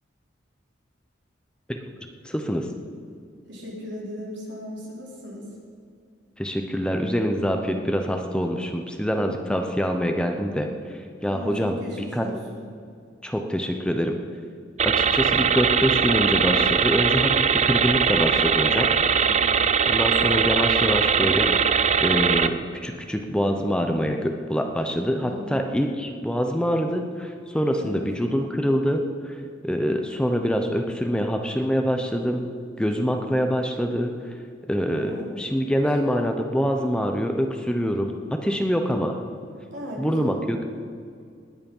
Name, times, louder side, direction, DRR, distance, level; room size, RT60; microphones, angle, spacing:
voice 1, 2.2-2.7 6.4-10.7 11.2-11.8 12.2-12.3 13.2-14.2 14.8-18.9 19.8-21.5 22.0-29.4 29.6-32.5 32.8-34.1 34.7-39.2 40.0-40.6, equal, 5° left, 4 dB, 0.8 m, -25 dB
voice 2, 3.5-5.5 11.3-12.7 19.2-19.6 25.2-25.7 27.8-28.1 34.9-35.3 35.7-35.8 39.7-40.4, equal, 70° right, -4 dB, 4.1 m, -37 dB
sound 1, 14.8-22.5, right 6 dB, 35° right, 0.5 m, -21 dB
19.5 x 9.7 x 5.5 m, 2.3 s
head